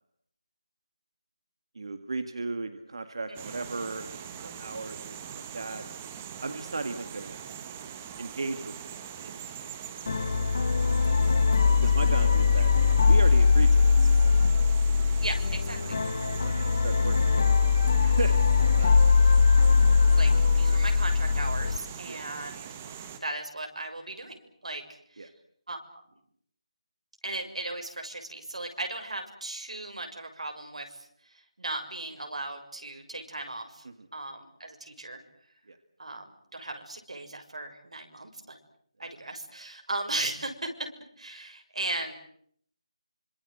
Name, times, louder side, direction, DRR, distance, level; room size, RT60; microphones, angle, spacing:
voice 1, 1.8-5.8 6.4-7.4 8.2-9.3 10.1-10.3 11.8-12.7 13.0-14.4 16.4-17.3 17.7-19.1 22.1-22.2 25.2-25.3 33.9-34.1 35.7-35.8, right 3 dB, 50° right, 9 dB, 1.9 m, -36 dB
voice 2, 3.3-3.6 15.2-16.0 20.1-22.7 23.2-24.8 25.1-25.3 25.7-26.0 27.2-33.8 34.1-35.2 36.0-38.6 39.0-40.7 41.2-42.1, right 2 dB, 85° right, 5 dB, 6.8 m, -37 dB
sound 1, 3.4-23.2, right 8 dB, 15° right, 1.1 m, -42 dB
sound 2, 10.1-21.8, left 5 dB, 30° left, 1.4 m, -21 dB
26.0 x 26.0 x 8.0 m, 0.65 s
figure-of-eight pair, 180°, 3 cm